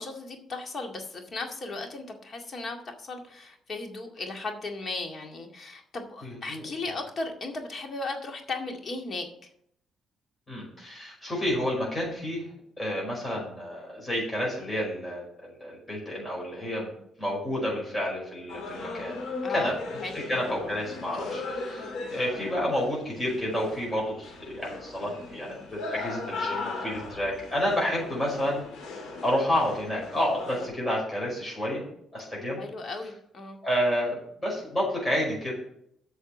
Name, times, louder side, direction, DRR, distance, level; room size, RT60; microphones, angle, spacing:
voice 1, 0.0-9.3 19.4-19.7 20.0-20.2 32.6-33.6, left 3 dB, 45° left, 3 dB, 2.1 m, -36 dB
voice 2, 6.2-6.7 10.5-12.4 12.8-16.9 17.2-19.2 19.5-19.8 20.1-28.6 29.2-31.8 32.1-32.6 33.6-35.5, equal, 20° left, -4 dB, 5.3 m, -30 dB
sound 1, 18.5-30.7, left 3 dB, 80° left, 3.1 m, -38 dB
8.4 x 6.3 x 7.5 m, 0.71 s
cardioid pair, 90°, 0 cm